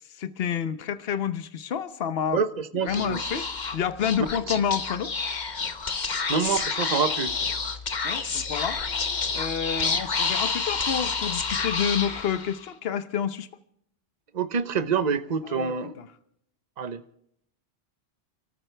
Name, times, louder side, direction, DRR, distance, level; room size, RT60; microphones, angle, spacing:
voice 1, 0.1-2.4 2.8-5.1 8.0-8.8 9.3-13.5 15.5-16.1, left 8 dB, 65° left, 1.1 m, -29 dB
voice 2, 2.3-3.5 6.3-7.3 14.3-15.9 16.8-17.0, right 6 dB, 45° right, 1.0 m, -27 dB
Speech / Whispering, 2.9-12.7, left 4 dB, 45° left, 1.2 m, -29 dB
30.0 x 13.5 x 3.4 m
omnidirectional pair, 1.1 m